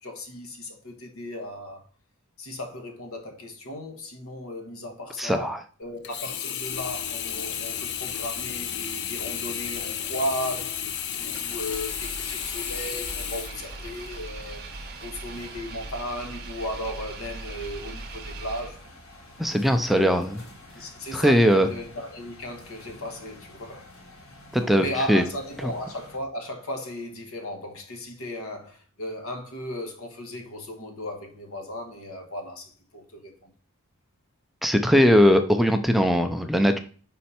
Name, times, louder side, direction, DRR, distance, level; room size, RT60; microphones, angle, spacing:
voice 1, 0.0-1.8 2.4-5.5 5.8-10.8 11.2-14.6 15.0-18.8 19.6-20.2 20.7-23.9 24.6-33.5, left 1 dB, 90° left, 1.3 m, -35 dB
voice 2, 5.2-5.6 19.4-20.4 21.1-21.7 24.5-25.2 25.6-25.7 34.6-36.8, equal, ahead, 0.4 m, -20 dB
Sink (filling or washing), 6.0-14.3 14.8-14.9, left 9 dB, 55° left, 0.5 m, -33 dB
sound 1, 6.6-26.2, left 1 dB, 75° left, 1.7 m, -48 dB
Engine, 11.3-19.1, right 3 dB, 50° right, 0.9 m, -40 dB
5.5 x 4.2 x 4.2 m
head